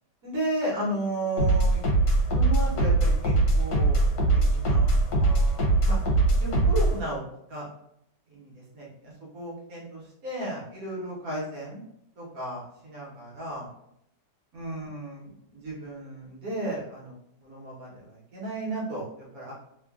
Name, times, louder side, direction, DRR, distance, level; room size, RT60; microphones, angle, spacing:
voice 1, 0.2-1.8 2.3-4.0 4.3-6.0 6.4-7.2 7.5-7.6 8.3-11.8 12.2-13.7 14.5-17.1 17.4-19.5, right 1 dB, 60° right, -4 dB, 1.4 m, -34 dB
sound 1, 1.4-7.0, right 2 dB, 70° left, 1.1 m, -22 dB
3.1 x 2.4 x 2.3 m, 0.76 s
omnidirectional pair, 1.8 m